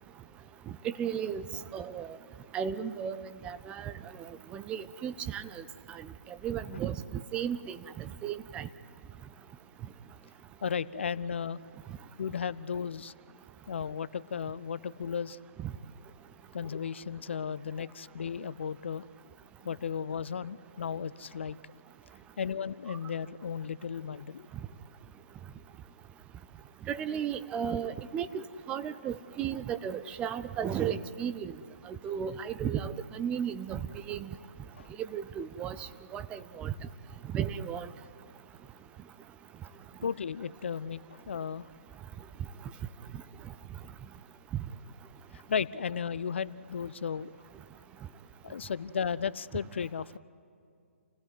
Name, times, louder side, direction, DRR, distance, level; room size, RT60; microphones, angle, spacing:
voice 1, 0.8-1.4 1.7-2.2 2.5-3.9 4.2-5.6 6.0-6.1 6.4-7.8 8.2-8.7 15.6-15.7 26.9-31.5 31.9-33.8 34.1-34.3 35.1-36.7 37.3-37.9, right 8 dB, 15° right, 12 dB, 0.5 m, -34 dB
voice 2, 10.6-11.6 12.2-13.1 13.7-15.4 16.5-19.0 19.6-21.6 22.4-24.5 34.7-34.9 40.0-41.7 45.3-47.3 48.4-50.2, left 7 dB, 55° left, 17 dB, 0.6 m, -35 dB
28.5 x 16.5 x 9.5 m, 2.4 s
figure-of-eight pair, 135°, 8 cm